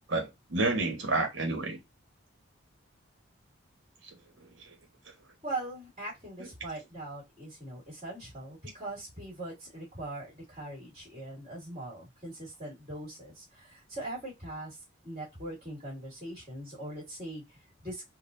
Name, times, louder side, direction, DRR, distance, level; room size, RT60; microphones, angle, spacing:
voice 1, 0.1-1.8 4.4-4.7 6.4-6.5, right 2 dB, 70° right, 1.2 m, -30 dB
voice 2, 5.4-14.8 15.0-18.0, right 1 dB, 30° right, 2.1 m, -41 dB
4.1 x 2.3 x 2.6 m
head